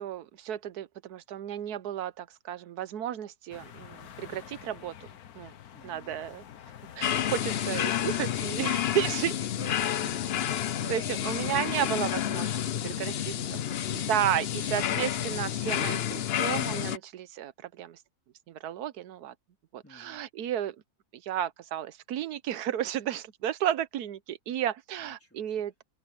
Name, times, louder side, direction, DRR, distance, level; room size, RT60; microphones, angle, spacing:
voice 1, 0.0-4.9 5.3-5.5 5.8-6.4 7.0-9.3 10.9-12.6 13.0-13.1 13.9-18.0 18.5-19.3 19.7-20.7 21.1-25.8, right 11 dB, 90° right, 1.3 m, -33 dB
sound 1, 3.5-9.0, left 9 dB, 75° left, 1.5 m, -48 dB
voice 2, 5.7-6.1 9.5-11.6 12.6-14.0 19.8-20.2 25.0-25.6, equal, 10° left, 3.2 m, -50 dB
sound 2, 7.0-17.0, left 10 dB, 60° left, 0.7 m, -30 dB
omnidirectional pair, 1.6 m